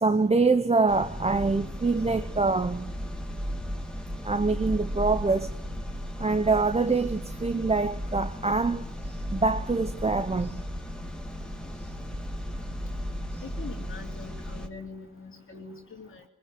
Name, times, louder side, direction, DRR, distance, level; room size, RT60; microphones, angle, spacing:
voice 1, 0.0-2.9 4.2-5.5 6.2-8.8 9.3-10.6, right 3 dB, 15° right, 0.9 m, -25 dB
sound 1, 0.9-14.7, equal, ahead, 2.8 m, -35 dB
voice 2, 13.4-16.2, left 4 dB, 30° left, 2.9 m, -43 dB
22.0 x 21.0 x 9.8 m
cardioid pair, 95°, 39 cm